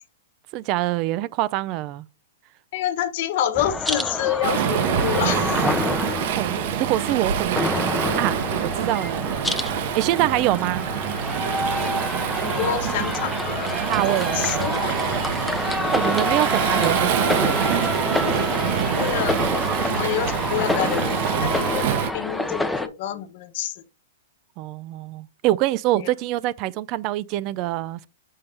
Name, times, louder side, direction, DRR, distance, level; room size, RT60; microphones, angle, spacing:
voice 1, 0.5-2.1 6.4-7.7 8.2-9.5 9.9-10.9 13.8-14.6 15.9-17.6 24.6-28.1, right 15 dB, 40° right, 0.4 m, -25 dB
voice 2, 2.7-5.6 12.4-13.8 14.1-15.0 18.6-19.4 19.8-21.8 22.1-23.8 26.0-26.1, left 11 dB, 55° left, 1.0 m, -28 dB
sound 1, 3.5-22.9, left 2 dB, 5° left, 0.6 m, -27 dB
Waves surf, 4.4-22.1, right 9 dB, 55° right, 0.8 m, -26 dB
6.6 x 5.4 x 3.3 m
hypercardioid pair, 140°, 0 cm